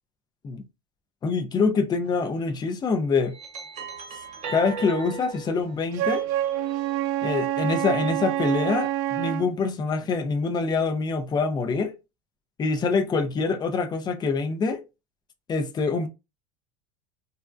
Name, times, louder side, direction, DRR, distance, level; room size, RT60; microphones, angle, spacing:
voice 1, 1.2-3.3 4.5-6.3 7.2-12.0 12.6-14.8 15.5-16.1, left 4 dB, 25° left, 0.5 m, -25 dB
sound 1, 2.0-2.3 3.0-7.2 7.7-8.8, right 3 dB, 40° right, 1.1 m, -39 dB
Wind instrument woodwind instrument, 5.9-9.5, right 13 dB, 70° right, 0.4 m, -27 dB
2.5 x 2.1 x 2.4 m
hypercardioid pair, 95°, 18 cm